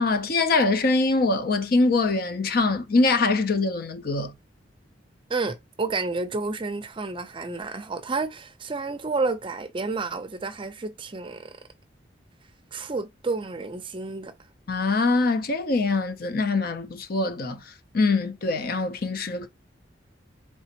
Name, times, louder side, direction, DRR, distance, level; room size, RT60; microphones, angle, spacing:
voice 1, 0.0-4.3 14.7-17.6 17.9-19.5, left 3 dB, 50° left, 0.6 m, -23 dB
voice 2, 5.3-11.5 12.7-14.3, right 3 dB, 30° right, 0.5 m, -30 dB
4.1 x 3.3 x 2.8 m
head